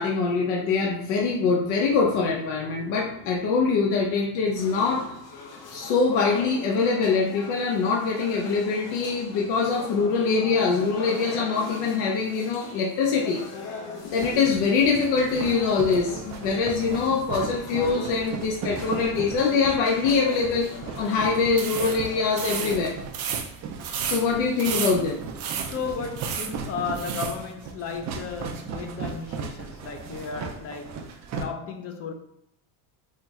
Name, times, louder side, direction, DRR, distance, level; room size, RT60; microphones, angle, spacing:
voice 1, 0.0-5.2 5.7-13.4 14.1-20.7 20.9-22.9 24.1-25.1, left 4 dB, 85° left, 0.7 m, -24 dB
sound 1, 4.6-22.9, left 3 dB, 55° left, 0.9 m, -40 dB
sound 2, 14.0-31.4, right 5 dB, 40° right, 0.4 m, -37 dB
sound 3, 21.5-27.4, right 7 dB, 75° right, 0.7 m, -33 dB
voice 2, 25.4-32.1, left 5 dB, 35° left, 0.4 m, -34 dB
4.4 x 2.0 x 3.5 m
cardioid pair, 130°, 46 cm